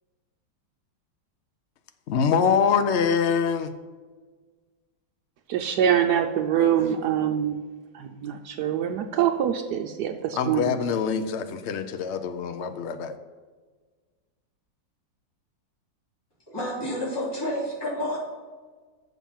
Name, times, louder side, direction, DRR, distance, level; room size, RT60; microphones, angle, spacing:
voice 1, 2.1-3.7 10.3-13.1, left 6 dB, 65° left, 8 dB, 0.6 m, -24 dB
voice 2, 5.5-7.6 7.9-10.7, right 9 dB, 70° right, 5 dB, 1.1 m, -24 dB
voice 3, 16.5-18.2, left 1 dB, 15° left, -7 dB, 2.9 m, -29 dB
7.1 x 6.1 x 7.2 m, 1.4 s
omnidirectional pair, 2.0 m